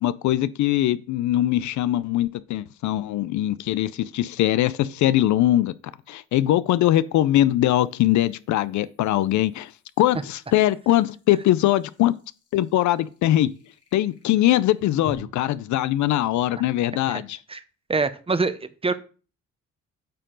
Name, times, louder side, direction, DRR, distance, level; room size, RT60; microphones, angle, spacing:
voice 1, 0.0-5.7 6.1-9.7 10.0-12.2 12.5-13.5 13.9-17.4, left 14 dB, 70° left, 0.5 m, -21 dB
sound 1, 1.5-1.6 5.0-15.1, left 4 dB, 55° left, 2.0 m, -52 dB
voice 2, 17.9-19.0, right 4 dB, 20° right, 0.7 m, -25 dB
8.8 x 4.5 x 3.8 m
cardioid pair, 90°, 30 cm